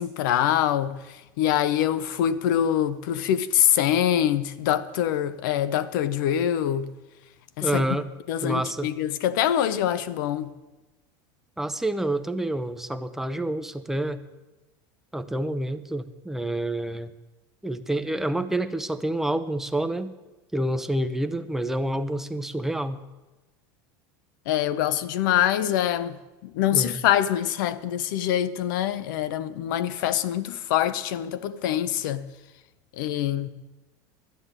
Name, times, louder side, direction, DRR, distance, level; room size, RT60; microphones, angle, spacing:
voice 1, 0.0-6.9 7.6-7.8 8.3-10.5 24.5-32.3 32.9-33.5, left 11 dB, 80° left, 0.8 m, -24 dB
voice 2, 7.6-8.1 8.4-8.9 11.6-14.2 15.1-17.1 17.6-20.1 20.5-23.0 26.7-27.0, right 1 dB, 5° right, 0.6 m, -28 dB
12.0 x 8.1 x 8.9 m
supercardioid pair, 150°, 11 cm